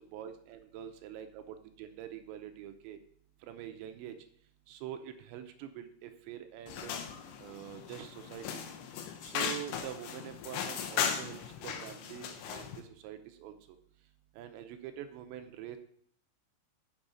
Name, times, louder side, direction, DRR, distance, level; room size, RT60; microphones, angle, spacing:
voice 1, 0.1-3.0 3.4-4.1 4.7-6.9 7.4-8.6 9.2-13.5 14.4-15.8, right 10 dB, 85° right, 7 dB, 3.0 m, -45 dB
sound 1, 6.7-12.8, left 8 dB, 80° left, 3.1 m, -37 dB
8.7 x 6.2 x 5.2 m, 0.63 s
omnidirectional pair, 5.3 m